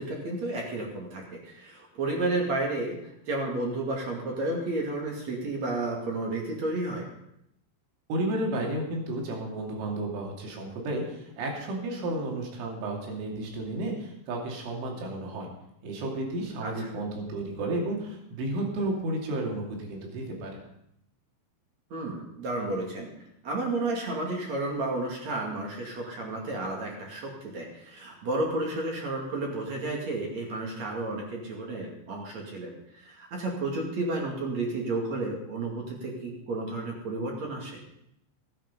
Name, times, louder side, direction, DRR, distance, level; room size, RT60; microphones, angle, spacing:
voice 1, 0.0-7.1 16.6-16.9 21.9-23.1 23.4-37.8, right 2 dB, 45° right, 0 dB, 2.9 m, -32 dB
voice 2, 8.1-15.5 15.8-20.6, right 1 dB, 90° right, 0 dB, 5.2 m, -32 dB
16.5 x 9.8 x 5.4 m, 0.79 s
omnidirectional pair, 5.5 m